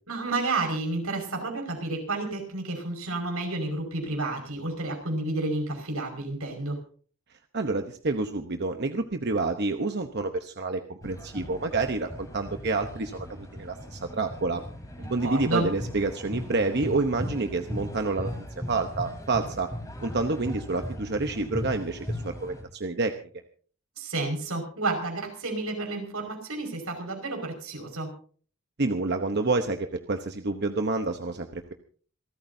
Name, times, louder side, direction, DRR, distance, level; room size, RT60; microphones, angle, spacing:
voice 1, 0.1-6.8 15.0-15.7 24.0-28.1, right 2 dB, 80° right, 3 dB, 5.3 m, -31 dB
voice 2, 7.5-14.6 15.1-18.3 18.7-19.7 20.0-23.1 28.8-31.7, right 3 dB, 50° right, 6 dB, 0.9 m, -28 dB
sound 1, 11.0-22.6, equal, 15° left, 3.7 m, -38 dB
27.5 x 13.5 x 2.7 m, 0.43 s
head